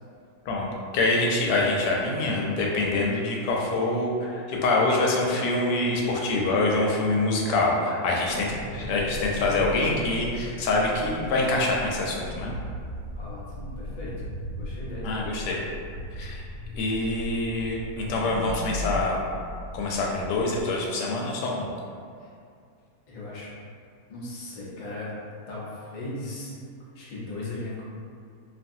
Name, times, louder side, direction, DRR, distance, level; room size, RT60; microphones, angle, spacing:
voice 1, 0.9-12.5 15.0-15.6 16.1-16.4 16.7-19.2 19.7-21.7, left 2 dB, 90° left, -2 dB, 1.2 m, -25 dB
sound 1, 8.3-20.6, equal, 70° right, 1.1 m, -37 dB
voice 2, 13.2-14.1 14.6-15.3 23.1-23.5 24.1-25.1 25.5-26.5 26.9-27.8, left 2 dB, 70° left, -7 dB, 0.4 m, -37 dB
2.8 x 2.4 x 2.6 m, 2.3 s
omnidirectional pair, 1.7 m